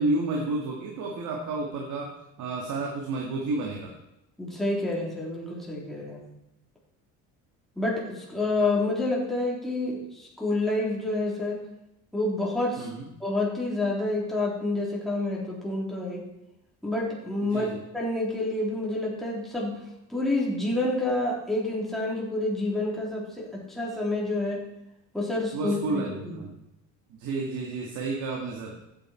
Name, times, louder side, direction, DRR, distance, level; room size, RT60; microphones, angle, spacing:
voice 1, 0.0-2.1 2.4-3.9 12.8-13.1 17.4-17.8 25.5-26.5 27.2-28.7, right 2 dB, 65° right, -1 dB, 2.1 m, -30 dB
voice 2, 4.4-6.2 7.8-10.0 10.4-11.6 12.1-12.9 13.2-16.2 16.8-17.7 17.9-19.7 20.1-24.6 25.1-26.4, left 2 dB, ahead, -5 dB, 3.5 m, -28 dB
14.5 x 8.9 x 4.5 m, 0.88 s
cardioid pair, 145°, 33 cm